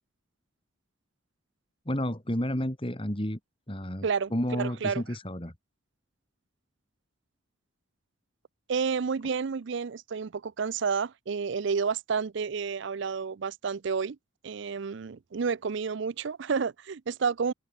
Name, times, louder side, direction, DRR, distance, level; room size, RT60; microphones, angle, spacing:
voice 1, 1.8-3.4 3.7-5.5, equal, 25° left, 2.9 m, -31 dB
voice 2, 4.0-5.0 8.7-14.2 14.4-17.5, right 5 dB, 60° right, 0.5 m, -30 dB
open air
head